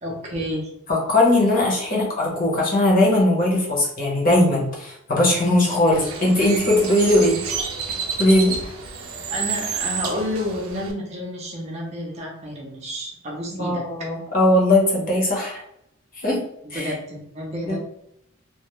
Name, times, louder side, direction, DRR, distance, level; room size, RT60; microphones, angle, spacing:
voice 1, 0.0-0.7 9.3-13.9 16.6-17.8, equal, 30° right, -2 dB, 0.5 m, -30 dB
voice 2, 0.9-7.4 8.2-8.6 13.6-15.6 16.2-16.4 16.7-16.9 17.7-17.8, left 1 dB, 40° left, -3 dB, 0.8 m, -19 dB
Bird, 5.9-10.9, right 5 dB, 85° right, 0.4 m, -30 dB
2.2 x 2.1 x 2.9 m, 0.75 s
head